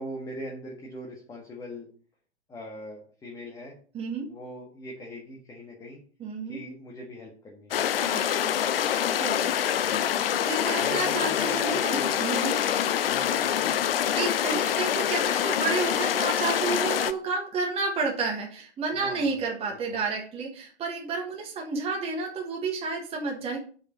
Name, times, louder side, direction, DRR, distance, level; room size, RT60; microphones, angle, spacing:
voice 1, 0.0-1.9 2.5-3.7 4.3-6.0 6.4-7.8 9.8-10.0 10.7-12.2 13.0-14.1 18.9-19.4 19.6-20.0, equal, 10° left, -2 dB, 1.6 m, -40 dB
voice 2, 3.9-4.3 6.2-6.6 8.0-8.3 9.2-9.8 10.4-12.5 14.1-23.6, right 4 dB, 15° right, 0 dB, 1.4 m, -31 dB
sound 1, 7.7-17.1, left 10 dB, 55° left, 0.7 m, -26 dB
7.1 x 5.3 x 5.2 m, 0.43 s
figure-of-eight pair, 110°, 34 cm